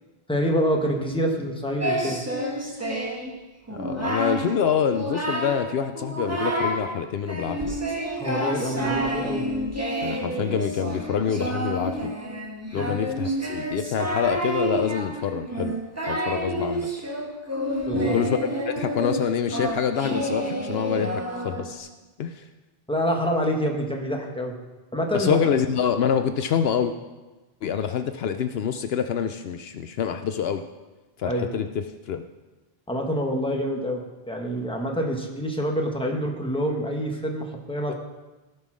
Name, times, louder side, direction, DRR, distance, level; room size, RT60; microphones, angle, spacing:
voice 1, 0.3-2.2 8.2-9.4 12.7-13.0 17.9-18.1 22.9-24.6 24.9-25.4 31.2-31.5 32.9-37.9, equal, 5° left, 1 dB, 1.3 m, -26 dB
Singing, 1.8-3.3 3.7-4.5 4.8-5.6 6.0-6.8 7.3-21.8, right 1 dB, 15° right, 1.5 m, -29 dB
voice 2, 3.7-7.7 10.0-12.1 12.7-15.7 16.1-16.9 17.9-18.4 18.7-21.9 22.2-22.4 25.1-26.9 27.6-30.6 31.2-32.2 37.9-38.0, left 8 dB, 70° left, 9 dB, 0.8 m, -26 dB
16.0 x 5.5 x 6.2 m, 1.2 s
omnidirectional pair, 1.1 m